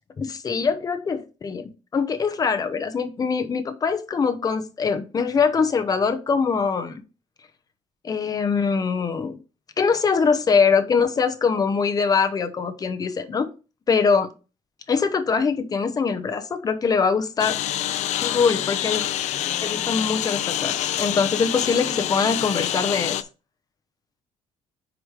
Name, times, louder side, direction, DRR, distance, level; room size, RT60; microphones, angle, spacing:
voice 1, 0.2-7.0 8.0-9.4 9.8-13.5 13.9-14.3 14.9-17.6 18.2-19.0 19.6-23.2, left 5 dB, 30° left, 8 dB, 0.9 m, -23 dB
Engine, 17.4-23.2, left 12 dB, 70° left, 0.5 m, -26 dB
5.0 x 5.0 x 4.8 m, 0.33 s
cardioid pair, 130°, 12 cm